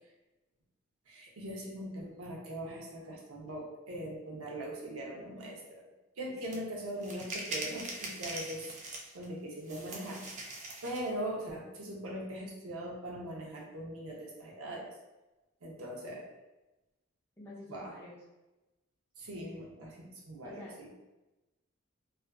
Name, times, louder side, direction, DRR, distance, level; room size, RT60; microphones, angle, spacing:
voice 1, 1.1-5.6 6.2-8.7 9.1-10.3 10.8-14.9 15.6-16.3 17.7-17.9 19.2-20.9, right 1 dB, 80° right, -2 dB, 0.6 m, -41 dB
voice 2, 6.3-6.6 17.4-18.2 20.4-20.7, left 2 dB, 10° left, -7 dB, 0.6 m, -49 dB
sound 1, 6.5-6.6 7.0-9.2 9.7-11.1, right 2 dB, 35° right, 0.3 m, -41 dB
2.4 x 2.3 x 2.2 m, 1.0 s
head